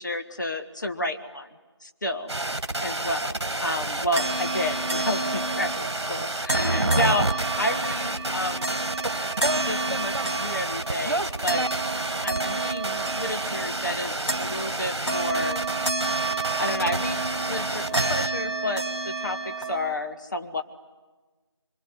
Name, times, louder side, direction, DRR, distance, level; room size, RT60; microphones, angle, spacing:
voice 1, 0.0-1.5 1.8-2.3 2.8-8.7 9.6-11.7 12.2-15.6 16.2-17.2 17.5-20.6, left 1 dB, 40° left, 5 dB, 1.7 m, -31 dB
sound 1, 2.3-18.3, right 2 dB, 65° right, 1.6 m, -29 dB
sound 2, 4.2-19.9, right 3 dB, 5° left, 1.9 m, -31 dB
25.0 x 24.5 x 9.8 m, 1.3 s
figure-of-eight pair, 170°, 15 cm